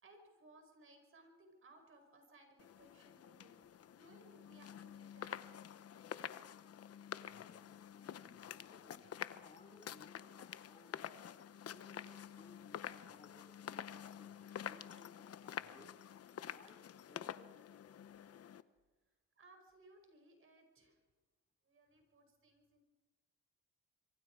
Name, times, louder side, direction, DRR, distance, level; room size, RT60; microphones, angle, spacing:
voice 1, 0.0-6.0 19.4-21.0 21.7-22.8, right 2 dB, 45° right, 4 dB, 5.3 m, -64 dB
sound 1, 2.6-18.6, left 9 dB, 55° left, 0.9 m, -49 dB
voice 2, 7.2-16.0 16.4-16.8 17.1-17.5, left 3 dB, 25° left, 3 dB, 2.7 m, -63 dB
26.0 x 23.5 x 4.8 m, 1.3 s
cardioid pair, 90°, 30 cm